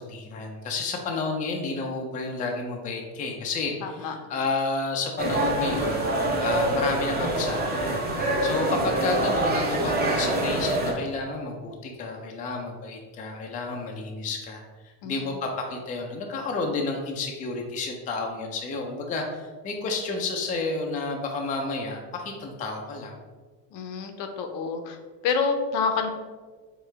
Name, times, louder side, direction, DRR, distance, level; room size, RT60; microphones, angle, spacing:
voice 1, 0.0-3.7 4.0-6.0 6.4-8.0 8.4-14.6 15.0-23.2, left 3 dB, 20° left, 1 dB, 0.4 m, -31 dB
voice 2, 3.8-4.1 15.0-15.4 23.7-25.0 25.2-26.1, left 5 dB, 60° left, 6 dB, 0.8 m, -28 dB
sound 1, 5.2-10.9, right 2 dB, 20° right, 0.7 m, -25 dB
4.8 x 3.3 x 3.2 m, 1.4 s
supercardioid pair, 120°, 48 cm